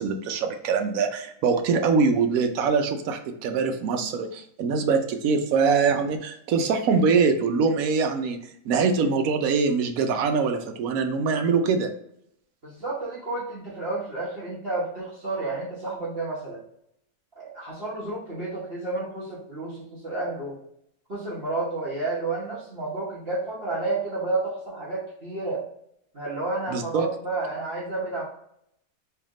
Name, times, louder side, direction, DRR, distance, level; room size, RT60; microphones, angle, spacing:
voice 1, 0.0-8.4 8.6-11.9 26.7-27.1, right 5 dB, 70° right, 6 dB, 0.9 m, -23 dB
voice 2, 12.6-16.6 17.4-20.6 21.1-25.6 26.1-28.2, right 2 dB, 40° right, -8 dB, 1.3 m, -31 dB
3.4 x 2.8 x 3.6 m, 0.71 s
omnidirectional pair, 1.7 m